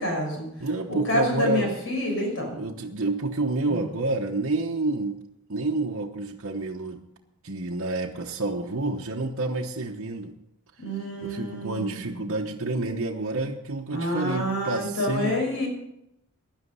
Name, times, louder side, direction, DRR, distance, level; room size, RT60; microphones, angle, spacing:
voice 1, 0.0-0.5 0.9-2.6 3.7-3.9 10.8-12.3 13.9-15.7, left 1 dB, 60° left, 2 dB, 5.8 m, -28 dB
voice 2, 0.6-1.7 2.5-5.2 5.5-7.0 7.4-10.3 11.2-15.4, right 2 dB, 60° right, -1 dB, 1.1 m, -29 dB
16.5 x 11.0 x 5.5 m, 0.82 s
head